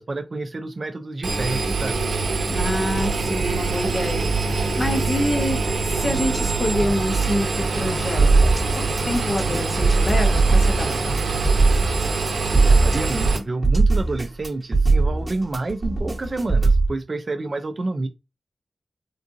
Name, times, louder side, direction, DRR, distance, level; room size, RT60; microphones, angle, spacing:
voice 1, 0.0-2.1 12.5-18.1, right 2 dB, 35° right, 0.4 m, -29 dB
Engine, 1.2-13.4, right 3 dB, 75° right, 0.6 m, -24 dB
voice 2, 2.5-8.3 8.8-11.2, left 1 dB, 30° left, 0.8 m, -27 dB
sound 1, 8.2-16.9, right 3 dB, 20° right, 1.1 m, -19 dB
3.7 x 2.5 x 2.5 m
wide cardioid pair, 135°, 0 cm